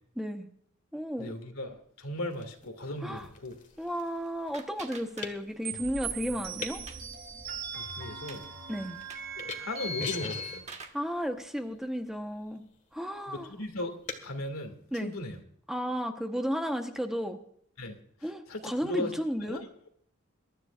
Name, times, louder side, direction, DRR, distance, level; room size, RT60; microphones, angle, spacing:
voice 1, 0.1-0.5 0.9-1.4 3.0-3.3 3.8-6.8 8.7-9.0 10.9-12.6 12.9-13.5 14.9-15.2 15.7-17.4 18.2-19.6, equal, ahead, 4 dB, 1.0 m, -33 dB
voice 2, 1.2-3.5 7.7-8.5 9.6-10.6 13.2-13.9 14.2-15.4 17.8-18.0 18.5-19.1 19.4-19.6, left 1 dB, 85° left, 5 dB, 2.3 m, -37 dB
sound 1, 2.3-14.3, left 4 dB, 35° left, 1.7 m, -46 dB
sound 2, 3.8-5.8 6.1-7.2 7.6-7.7 8.0-8.4 9.0-9.4 10.1-11.1, right 4 dB, 35° right, 1.4 m, -48 dB
sound 3, 5.6-10.6, right 3 dB, 50° right, 3.8 m, -39 dB
23.0 x 13.0 x 2.5 m, 0.66 s
head